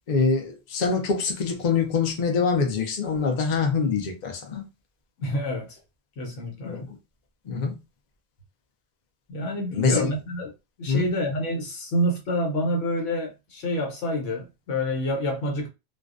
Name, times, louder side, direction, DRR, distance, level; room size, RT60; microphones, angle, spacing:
voice 1, 0.1-4.6 6.6-7.0 7.5-7.7 9.7-10.1 10.9-11.1, left 5 dB, 50° left, 0.5 m, -24 dB
voice 2, 5.2-5.8 6.2-6.9 9.3-10.5 10.8-15.7, equal, 80° left, 1.1 m, -28 dB
2.4 x 2.1 x 2.4 m
omnidirectional pair, 1.3 m